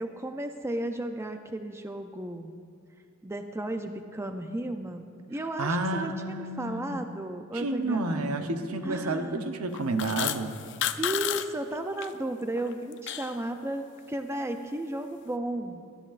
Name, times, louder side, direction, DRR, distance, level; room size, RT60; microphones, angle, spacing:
voice 1, 0.0-2.5 3.2-8.5 8.8-9.4 11.0-15.8, right 1 dB, 10° right, 6 dB, 0.4 m, -34 dB
voice 2, 5.6-7.0 7.5-10.5, right 2 dB, 80° right, 6 dB, 0.8 m, -30 dB
sound 1, 9.7-11.5 11.7-12.1 12.5-13.4, left 11 dB, 55° left, 0.4 m, -31 dB
17.5 x 13.0 x 2.5 m, 2.2 s
head